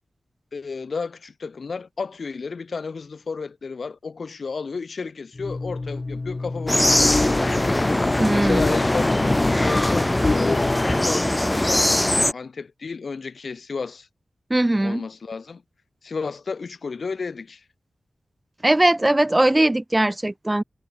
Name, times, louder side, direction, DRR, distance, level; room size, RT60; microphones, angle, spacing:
voice 1, 0.5-9.2 9.6-14.1 14.8-15.6 16.0-17.6, left 4 dB, 65° left, 5.1 m, -33 dB
sound 1, 5.3-11.1, left 3 dB, 40° left, 2.1 m, -26 dB
sound 2, 6.7-12.3, left 1 dB, 15° left, 0.9 m, -21 dB
voice 2, 8.2-8.6 14.5-15.0 18.6-20.6, right 1 dB, 20° right, 1.2 m, -20 dB
wide cardioid pair, 75°, 0 cm